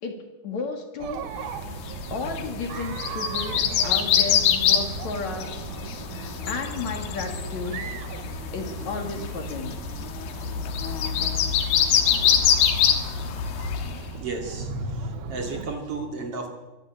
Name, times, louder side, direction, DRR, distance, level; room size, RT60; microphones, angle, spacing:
voice 1, 0.0-1.3 2.1-5.5 6.1-7.8 8.5-9.7, left 4 dB, 50° left, 4 dB, 3.1 m, -33 dB
Chatter, 1.0-15.8, right 8 dB, 75° right, 2.9 m, -38 dB
sound 1, 1.6-14.0, left 8 dB, 80° left, 3.5 m, -25 dB
voice 2, 14.2-16.5, right 2 dB, 40° right, 3 dB, 2.9 m, -32 dB
24.5 x 12.5 x 8.6 m, 1.1 s
omnidirectional pair, 4.5 m